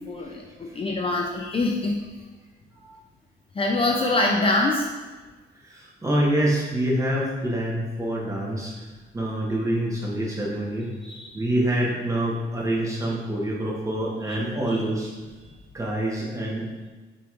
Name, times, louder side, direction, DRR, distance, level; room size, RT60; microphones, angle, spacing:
voice 1, 0.0-2.0 3.5-4.9 11.0-11.4 14.3-14.4 14.7-14.8, left 2 dB, 30° left, -1 dB, 0.5 m, -24 dB
voice 2, 5.6-8.7 9.1-10.9 11.3-15.1 15.7-16.7, right 1 dB, 15° right, -4 dB, 1.2 m, -26 dB
6.8 x 3.1 x 2.5 m, 1.3 s
cardioid pair, 90°, 20 cm